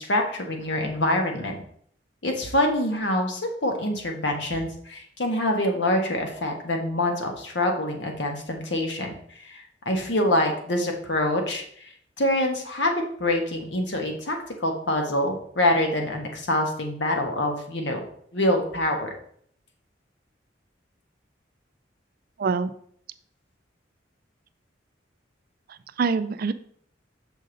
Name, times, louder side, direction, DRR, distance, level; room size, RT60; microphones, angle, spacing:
voice 1, 0.0-1.6 2.2-11.6 12.2-12.9 13.2-18.0 18.3-19.1, left 1 dB, 70° left, 3 dB, 1.3 m, -25 dB
voice 2, 22.4-22.7 25.7-26.5, right 5 dB, 55° right, 13 dB, 0.4 m, -25 dB
6.5 x 5.2 x 3.9 m, 0.62 s
head